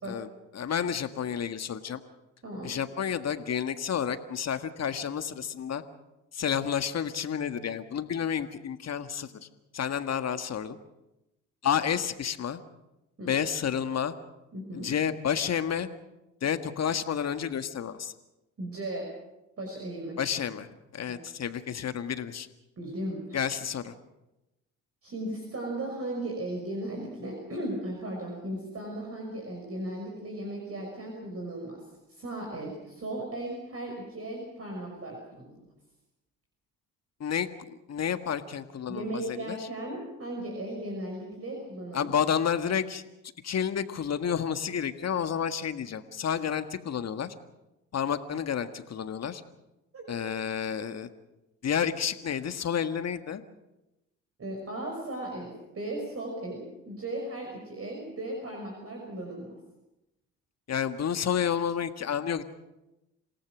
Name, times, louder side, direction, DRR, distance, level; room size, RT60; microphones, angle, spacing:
voice 1, 0.5-2.0 2.6-5.8 6.3-9.5 9.7-10.8 11.6-12.6 13.3-14.2 14.7-15.9 16.4-18.1 20.2-20.7 20.9-22.5 23.3-23.9 37.2-39.6 41.9-43.0 43.4-47.3 47.9-49.4 50.1-51.1 51.6-53.4 60.7-62.4, left 8 dB, 45° left, 10 dB, 1.7 m, -30 dB
voice 2, 2.4-2.7 13.2-13.3 14.5-14.9 18.6-19.1 19.6-20.2 21.1-21.2 22.8-23.4 25.0-31.8 32.1-35.7 38.9-42.1 49.9-50.0 54.4-59.6, right 1 dB, 40° right, 0 dB, 6.0 m, -36 dB
27.5 x 18.0 x 6.3 m, 0.96 s
hypercardioid pair, 55°, 37 cm